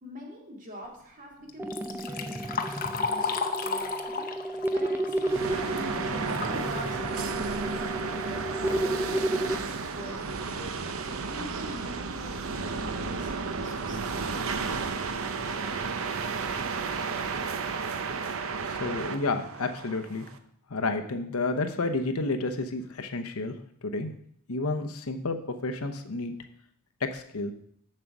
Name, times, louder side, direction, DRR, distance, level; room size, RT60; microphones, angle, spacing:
voice 1, 0.0-10.6 11.0-16.2, equal, 40° right, -1 dB, 2.4 m, -45 dB
Liquid, 1.5-6.6 7.0-7.1 8.0-8.1 8.5-8.8 9.5-9.6 10.1-10.2 10.6-10.8, left 5 dB, 40° left, 0.8 m, -34 dB
sound 1, 1.6-9.6, right 1 dB, 10° right, 0.5 m, -32 dB
sound 2, 5.3-20.4, right 4 dB, 65° right, 0.7 m, -33 dB
voice 2, 18.6-20.3 20.7-23.5 23.8-24.1 24.5-26.3 27.0-27.5, left 3 dB, 75° left, 6 dB, 0.9 m, -30 dB
7.6 x 6.6 x 6.0 m, 0.69 s
head